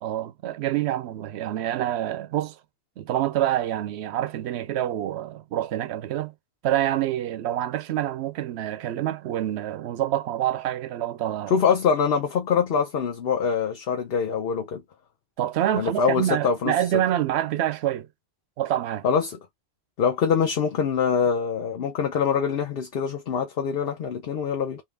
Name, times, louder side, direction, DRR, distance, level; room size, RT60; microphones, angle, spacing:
voice 1, 0.0-2.6 3.0-6.3 6.6-11.6 15.4-18.1 18.6-19.0, right 12 dB, 90° right, 0.8 m, -26 dB
voice 2, 11.5-14.8 15.7-16.7 19.0-19.4 20.0-24.8, left 6 dB, 65° left, 0.9 m, -24 dB
3.0 x 2.7 x 3.3 m
omnidirectional pair, 1.1 m